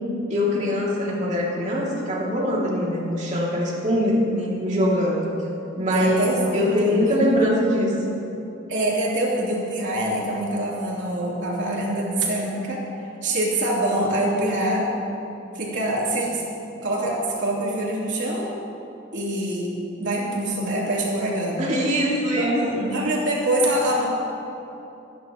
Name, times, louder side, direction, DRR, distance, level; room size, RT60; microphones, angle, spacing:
voice 1, 0.3-5.3 5.8-8.2 21.6-22.9, equal, 35° right, -4 dB, 2.7 m, -23 dB
voice 2, 5.9-7.5 8.7-12.8 13.2-14.9 15.5-16.4 16.8-18.5 19.1-19.7 20.0-21.6 22.3-24.1, right 1 dB, 65° right, -6 dB, 3.4 m, -25 dB
26.0 x 10.5 x 3.1 m, 2.9 s
head